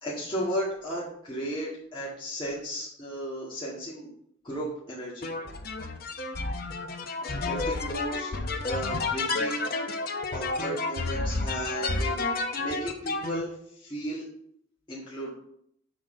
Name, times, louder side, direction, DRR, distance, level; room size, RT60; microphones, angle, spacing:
voice 1, 0.0-4.1 4.4-5.3 7.4-8.3 8.6-9.8 10.3-12.2 12.6-14.3 14.9-15.3, equal, 25° left, -7 dB, 1.8 m, -34 dB
sound 1, 5.2-13.4, left 3 dB, 50° left, 0.8 m, -31 dB
7.7 x 6.2 x 3.8 m, 0.68 s
head